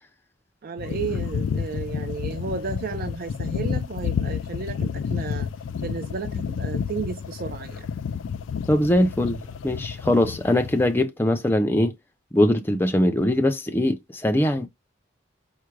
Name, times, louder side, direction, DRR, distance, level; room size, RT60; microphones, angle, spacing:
voice 1, 0.6-5.5 5.8-7.9, right 5 dB, 50° right, 0.4 m, -33 dB
sound 1, 0.8-11.0, left 7 dB, 65° left, 0.3 m, -30 dB
voice 2, 8.7-11.9 12.3-14.7, left 1 dB, 10° left, 0.5 m, -21 dB
4.8 x 2.1 x 4.5 m
head